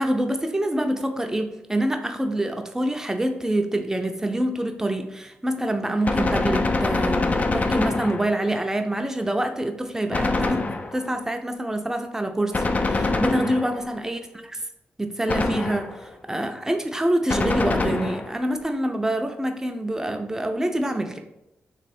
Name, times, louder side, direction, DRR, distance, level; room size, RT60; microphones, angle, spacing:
voice 1, 0.0-14.2 15.0-21.2, right 1 dB, 10° right, 5 dB, 0.5 m, -26 dB
Gunshot gunfire, 6.0-8.6 10.1-11.2 12.5-14.0 15.3-16.1 17.3-18.4, left 3 dB, 35° left, 0.4 m, -24 dB
3.2 x 2.9 x 4.3 m, 0.88 s
cardioid pair, 60°, 4 cm